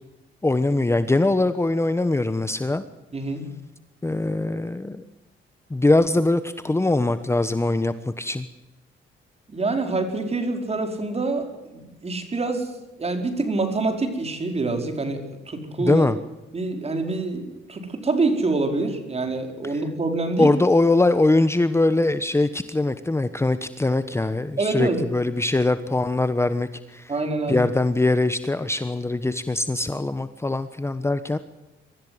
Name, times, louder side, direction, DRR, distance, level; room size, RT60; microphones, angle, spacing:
voice 1, 0.4-2.8 4.0-5.0 5.7-8.5 15.8-16.2 20.4-27.1 27.5-31.4, left 2 dB, 15° left, 12 dB, 1.1 m, -22 dB
voice 2, 3.1-3.4 9.5-12.7 13.0-16.1 16.5-20.5 24.6-25.0 27.1-27.6, right 3 dB, 30° right, 5 dB, 4.9 m, -26 dB
24.0 x 14.5 x 7.9 m, 1.0 s
cardioid pair, 90°, 20 cm